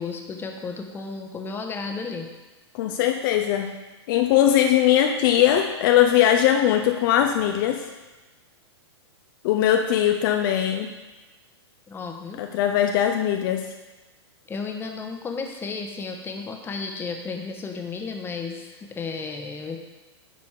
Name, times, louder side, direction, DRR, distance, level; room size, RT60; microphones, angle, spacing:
voice 1, 0.0-2.3 11.9-12.4 14.5-19.8, left 4 dB, 15° left, 3 dB, 1.0 m, -33 dB
voice 2, 2.7-3.7 4.1-7.9 9.4-10.9 12.4-13.7, left 11 dB, 50° left, 4 dB, 0.6 m, -20 dB
9.9 x 4.2 x 4.8 m, 1.1 s
hypercardioid pair, 120°, 14 cm